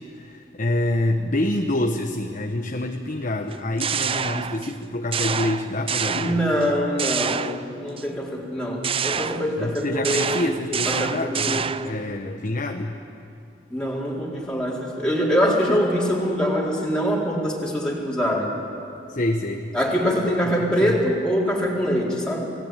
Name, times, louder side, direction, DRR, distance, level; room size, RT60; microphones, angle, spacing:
voice 1, 0.0-6.5 9.6-13.0 19.1-19.7 20.7-21.0, left 1 dB, 45° left, 3 dB, 1.2 m, -27 dB
sound 1, 3.5-4.8 5.1-6.7 7.0-8.0 8.8-12.0, right 7 dB, 30° right, 0.5 m, -27 dB
voice 2, 6.1-10.5 10.9-11.7 13.7-18.5 19.7-22.5, equal, 5° left, -5 dB, 4.1 m, -24 dB
28.5 x 18.5 x 9.1 m, 2.6 s
head